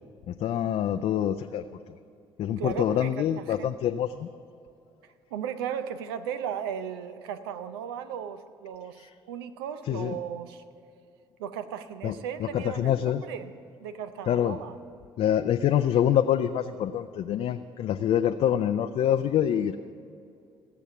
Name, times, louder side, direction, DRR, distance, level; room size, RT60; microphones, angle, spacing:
voice 1, 0.3-1.6 2.4-4.3 9.0-9.1 9.9-10.1 12.0-12.1 12.4-13.2 14.3-14.6 15.2-19.8, left 10 dB, 55° left, 8 dB, 0.4 m, -26 dB
voice 2, 2.6-3.1 3.4-3.7 5.3-10.6 11.4-13.5 13.8-14.8, right 8 dB, 85° right, 11 dB, 0.6 m, -36 dB
16.0 x 7.0 x 7.0 m, 2.5 s
hypercardioid pair, 50°, 12 cm